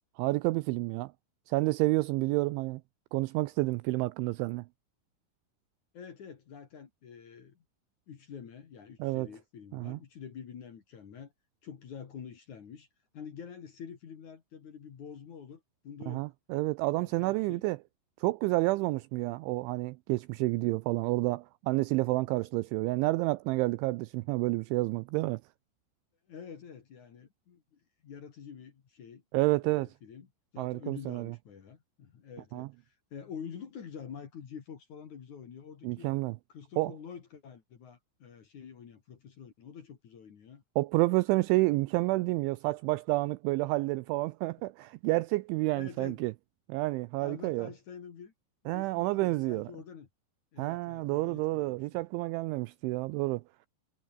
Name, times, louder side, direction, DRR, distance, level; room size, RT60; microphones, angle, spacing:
voice 1, 0.2-1.1 1.5-2.8 3.1-4.7 9.0-9.3 9.7-10.0 16.1-17.8 18.2-25.4 29.3-29.9 30.6-31.3 32.5-32.7 35.8-36.4 36.8-37.0 40.8-46.3 46.7-47.7 48.7-49.7 50.6-53.4, right 21 dB, 90° right, 2.7 m, -29 dB
voice 2, 5.9-7.6 8.1-11.3 11.6-12.9 13.1-16.3 17.0-17.7 26.3-29.2 29.6-30.3 30.5-36.1 36.5-40.6 45.8-46.2 47.2-48.3 48.6-50.1 50.5-52.0, left 7 dB, 50° left, 2.8 m, -47 dB
omnidirectional pair, 6.0 m